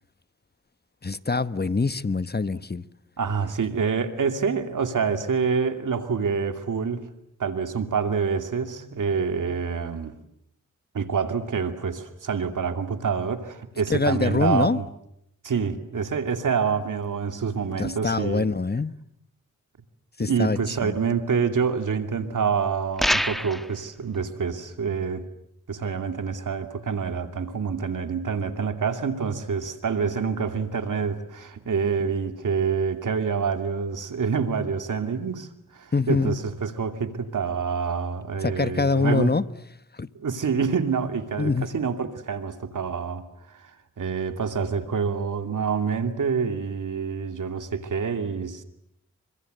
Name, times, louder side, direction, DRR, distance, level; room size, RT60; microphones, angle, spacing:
voice 1, 1.0-2.8 13.9-14.8 17.8-18.9 20.2-20.6 20.8-20.9 35.9-36.4 38.4-39.4 40.0-40.1 41.4-41.7, left 4 dB, 30° left, 1.1 m, -24 dB
voice 2, 3.2-7.1 7.4-10.1 10.9-14.9 15.4-18.4 20.2-25.3 25.7-39.4 40.1-43.7 44.0-48.6, right 6 dB, 80° right, 2.7 m, -27 dB
sound 1, 23.0-23.7, equal, ahead, 1.4 m, -24 dB
29.5 x 25.0 x 8.1 m
cardioid pair, 50°, 31 cm